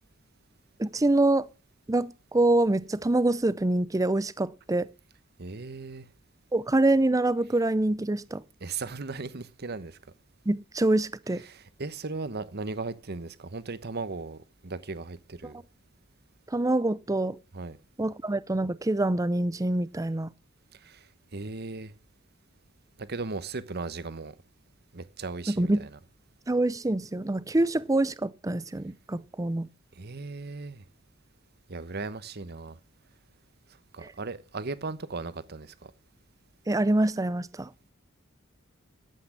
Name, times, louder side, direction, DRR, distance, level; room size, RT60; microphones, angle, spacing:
voice 1, 0.8-1.5 1.9-4.9 6.5-8.4 10.5-11.4 16.5-17.4 18.0-20.3 25.5-25.9 26.5-29.7 36.7-37.7, right 2 dB, 15° right, 0.5 m, -25 dB
voice 2, 5.4-6.1 8.6-10.0 11.4-15.6 17.5-17.8 20.7-21.9 23.0-24.4 24.9-25.9 29.9-30.8 31.7-32.8 33.9-35.9, right 3 dB, 55° right, 1.1 m, -37 dB
12.0 x 8.6 x 7.4 m
head